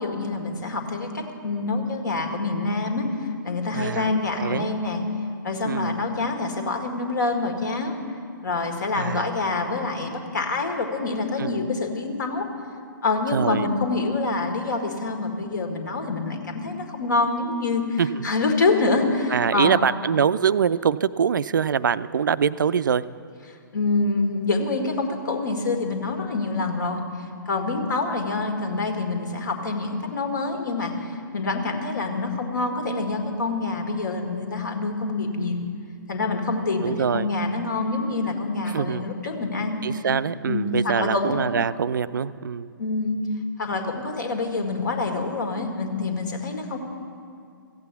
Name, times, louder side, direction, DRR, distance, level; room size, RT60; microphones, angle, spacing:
voice 1, 0.0-3.0 3.4-5.0 5.4-7.9 8.4-12.5 13.0-19.8 23.7-27.0 27.5-35.6 36.1-39.8 40.5-41.4 42.8-43.2 43.6-46.8, left 3 dB, 60° left, 4 dB, 1.9 m, -26 dB
voice 2, 3.7-4.7 5.6-6.0 9.0-9.3 11.4-11.6 13.3-13.7 18.0-18.3 19.3-23.0 36.8-37.3 38.7-39.1 39.8-42.7, right 7 dB, 65° right, 16 dB, 0.4 m, -24 dB
15.0 x 8.4 x 8.3 m, 2.3 s
figure-of-eight pair, 120°, 11 cm